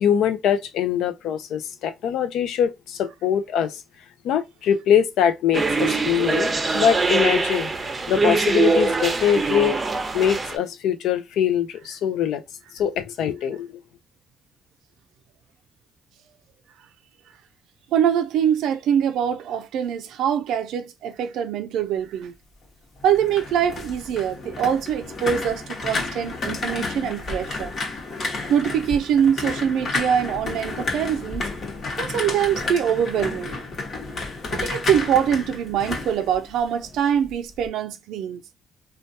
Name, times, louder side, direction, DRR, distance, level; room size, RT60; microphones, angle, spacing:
voice 1, 0.0-3.8 4.2-9.8 10.1-12.4 12.7-13.8, left 9 dB, 85° left, 0.4 m, -23 dB
sound 1, 5.5-10.6, right 3 dB, 30° right, 0.6 m, -23 dB
voice 2, 17.9-22.3 23.0-27.7 28.5-31.5 32.0-33.6 34.5-38.4, right 8 dB, 85° right, 0.3 m, -23 dB
sound 2, 23.0-37.0 37.3-37.7, left 3 dB, 55° left, 1.1 m, -31 dB
3.2 x 2.2 x 2.6 m
cardioid pair, 90°, 0 cm